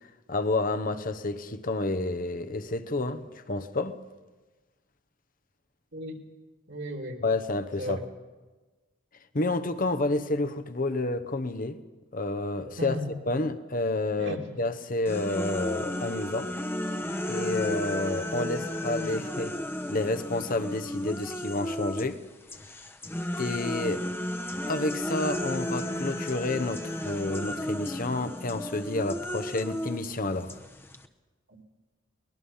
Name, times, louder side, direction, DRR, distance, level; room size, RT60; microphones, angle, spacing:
voice 1, 0.3-4.0 7.2-8.0 9.3-11.8 12.1-13.0 13.3-16.5 17.2-19.5 19.9-22.2 23.4-24.0 24.7-30.5, left 2 dB, 45° left, 1.0 m, -29 dB
voice 2, 6.7-7.2 7.8-8.1 12.8-13.1 14.2-14.4 31.5-31.6, equal, 65° right, 2.9 m, -35 dB
sound 1, 15.1-22.1 22.5-31.1, left 1 dB, 10° left, 1.0 m, -33 dB
23.0 x 20.0 x 5.7 m
head